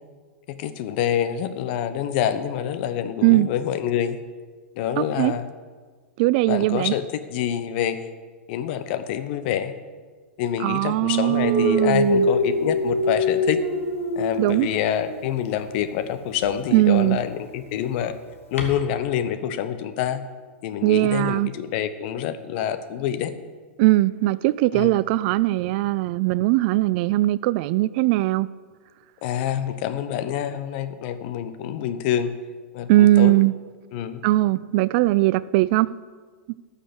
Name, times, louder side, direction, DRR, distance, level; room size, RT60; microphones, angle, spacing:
voice 1, 0.6-4.2 4.8-5.5 6.5-7.0 7.3-8.0 8.5-9.7 10.4-13.6 14.2-18.1 18.5-20.2 20.6-23.3 24.7-24.9 29.2-32.3 32.7-33.3 33.9-34.2, left 10 dB, 50° left, 11 dB, 1.0 m, -26 dB
voice 2, 5.0-5.3 6.2-6.9 10.6-12.3 14.4-14.7 16.7-17.2 20.8-21.5 23.8-28.5 32.9-33.5 34.2-35.9, right 17 dB, 50° right, 19 dB, 0.4 m, -20 dB
Dog, 11.3-15.3 16.3-16.5 18.6-18.7, left 1 dB, 85° left, 1.9 m, -24 dB
12.5 x 6.6 x 7.8 m, 1.5 s
hypercardioid pair, 110°, 7 cm